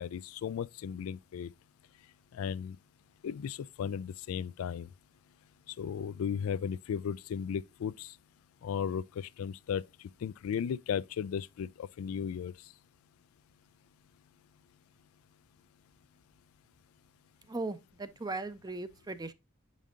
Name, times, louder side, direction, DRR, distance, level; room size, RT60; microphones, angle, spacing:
voice 1, 0.0-1.5 2.3-2.8 3.2-4.9 5.7-8.2 8.6-12.5, left 7 dB, 85° left, 0.3 m, -35 dB
voice 2, 17.4-19.3, right 2 dB, 20° right, 0.5 m, -38 dB
7.5 x 5.2 x 2.4 m
head